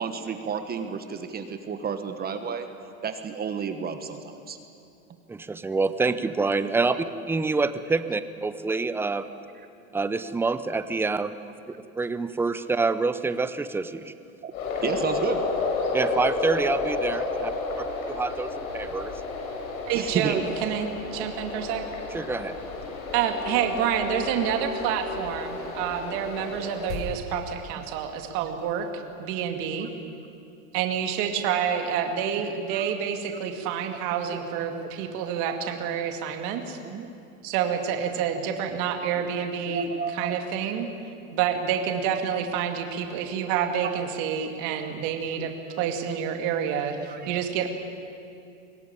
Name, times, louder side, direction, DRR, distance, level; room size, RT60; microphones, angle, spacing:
voice 1, 0.0-2.7 3.0-4.6 14.4-14.5 14.8-15.4 17.3-17.8 19.9-20.4 29.8-29.9 32.7-32.9 33.3-33.4 34.3-35.2 35.8-36.0 36.8-37.1 39.1-39.3 39.7-40.4 40.8-40.9 43.8-43.9 44.8-45.0 45.3-45.5 46.9-47.3, right 6 dB, 20° right, 8 dB, 1.3 m, -32 dB
voice 2, 5.3-9.3 9.9-11.3 11.7-14.1 15.9-17.5 18.1-19.1 22.1-22.5, right 3 dB, 5° right, 12 dB, 0.6 m, -27 dB
sound 1, 14.5-27.0, left 3 dB, 75° left, 6.6 m, -31 dB
voice 3, 19.9-21.9 23.1-29.9 30.7-36.8 37.4-40.9 41.3-47.7, right 8 dB, 50° right, 4 dB, 2.5 m, -28 dB
23.0 x 17.0 x 9.9 m, 2.6 s
supercardioid pair, 130°, 43 cm